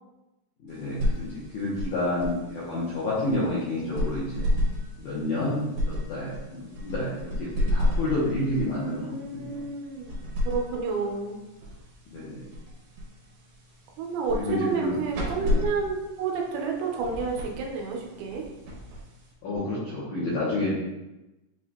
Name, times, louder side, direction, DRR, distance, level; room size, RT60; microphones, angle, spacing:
voice 1, 0.6-4.4 5.0-9.6 12.1-12.5 14.3-15.0 15.4-15.6 19.4-20.7, left 1 dB, 75° left, -8 dB, 1.8 m, -29 dB
sound 1, 0.7-19.6, left 1 dB, 70° right, 1.7 m, -33 dB
voice 2, 8.8-10.1 10.4-11.4 14.0-18.5, right 5 dB, 85° right, 0 dB, 2.7 m, -30 dB
7.5 x 2.7 x 2.2 m, 1.0 s
omnidirectional pair, 4.5 m